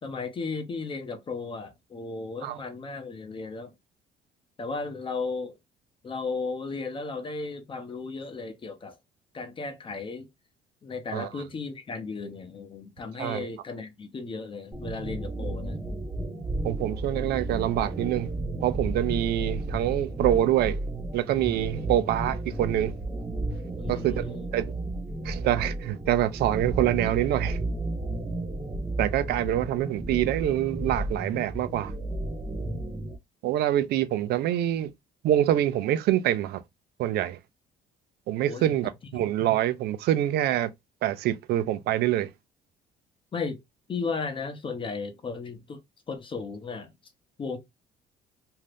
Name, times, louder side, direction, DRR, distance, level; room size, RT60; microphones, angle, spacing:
voice 1, 0.0-3.7 4.6-5.5 6.0-9.0 9.3-10.3 10.8-15.8 23.8-24.5 28.3-28.4 38.5-38.7 39.1-39.2 43.3-43.6 43.9-45.8 46.1-46.9 47.4-47.6, left 4 dB, 30° left, 0.8 m, -35 dB
voice 2, 11.1-11.4 13.2-13.5 16.6-18.3 18.6-20.8 21.1-22.9 23.9-24.2 24.5-24.7 25.2-27.6 29.0-31.9 33.4-34.9 35.2-36.6 37.0-37.4 38.3-40.7 41.0-42.3, right 12 dB, 70° right, 0.5 m, -25 dB
sound 1, 14.7-33.2, right 2 dB, 20° right, 0.8 m, -33 dB
2.7 x 2.4 x 3.3 m
cardioid pair, 110°, 17 cm